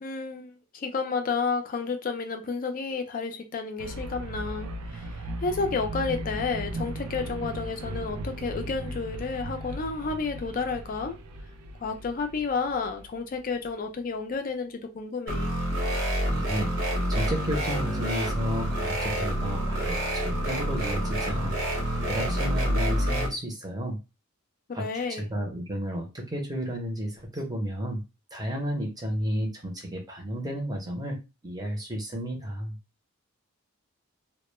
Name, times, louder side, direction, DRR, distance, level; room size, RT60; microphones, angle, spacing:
voice 1, 0.0-11.2 11.8-15.6 24.7-25.3, left 4 dB, 40° left, 0.4 m, -31 dB
sound 1, 3.8-13.7, right 1 dB, 85° right, 0.4 m, -37 dB
sound 2, 15.3-23.3, equal, 55° right, 0.8 m, -27 dB
voice 2, 16.3-21.6 22.1-24.0 24.7-24.8 25.1-28.0 28.3-31.2 31.4-32.8, equal, 15° right, 0.6 m, -32 dB
2.1 x 2.1 x 3.0 m
head